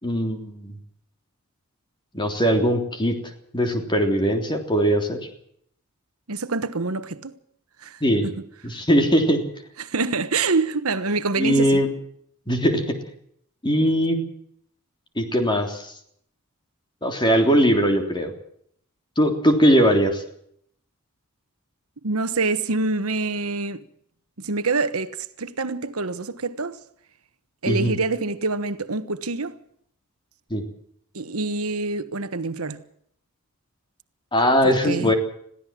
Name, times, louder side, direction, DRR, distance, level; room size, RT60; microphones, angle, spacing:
voice 1, 0.0-0.8 2.1-3.2 3.5-5.2 8.0-8.2 8.6-9.4 11.4-11.9 12.5-12.9 13.6-14.2 15.2-15.9 17.0-18.3 19.2-20.2 27.7-27.9 30.5-30.6 34.3-35.1, equal, 20° left, 3.4 m, -20 dB
voice 2, 6.3-7.4 7.8-8.3 9.8-11.8 22.0-23.8 24.4-26.8 27.6-29.6 31.1-32.8 34.6-35.1, right 3 dB, 75° right, 1.3 m, -26 dB
22.0 x 16.0 x 7.5 m
head